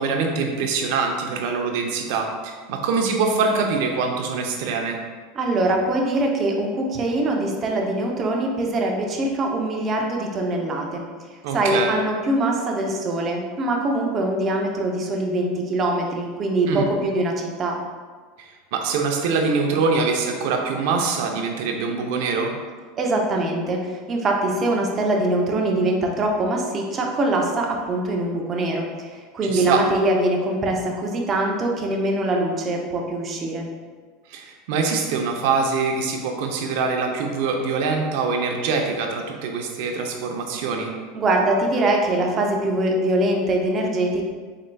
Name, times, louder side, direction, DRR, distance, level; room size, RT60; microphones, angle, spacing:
voice 1, 0.0-5.0 11.4-12.0 16.7-16.9 18.4-22.5 29.4-29.8 34.3-40.9, right 4 dB, 65° right, 3 dB, 0.6 m, -24 dB
voice 2, 5.4-11.0 11.5-17.8 23.0-33.7 41.1-44.2, right 1 dB, 30° right, 1 dB, 0.6 m, -23 dB
4.3 x 3.8 x 2.2 m, 1.5 s
supercardioid pair, 140°, 0 cm